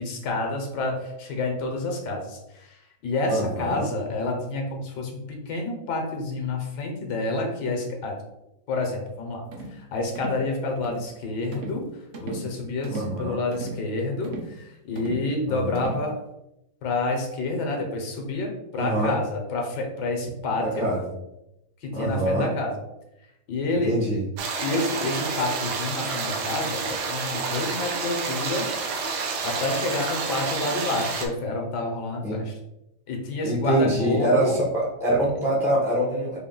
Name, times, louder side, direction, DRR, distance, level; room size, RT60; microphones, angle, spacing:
voice 1, 0.0-8.1 8.7-9.4 9.7-11.8 12.2-16.1 16.8-20.9 21.8-22.8 23.5-24.0 24.6-28.7 29.4-32.6 33.1-34.5, left 2 dB, 75° left, 2 dB, 1.4 m, -28 dB
voice 2, 3.3-3.9 12.9-13.4 15.5-15.9 18.7-19.2 20.6-21.2 21.9-22.5 23.7-24.3 32.2-32.4 33.4-36.4, right 1 dB, 5° right, -5 dB, 0.3 m, -25 dB
sound 1, 9.5-9.8 10.1-10.5 10.8-11.1 11.5-11.9 12.1-12.5 12.8-13.2 13.5-13.8 14.2-14.6 15.0-15.3 15.7-16.1, right 2 dB, 65° right, 0.6 m, -37 dB
sound 2, 24.4-31.3, right 4 dB, 80° right, 1.2 m, -29 dB
4.1 x 2.2 x 3.7 m, 0.89 s
omnidirectional pair, 1.8 m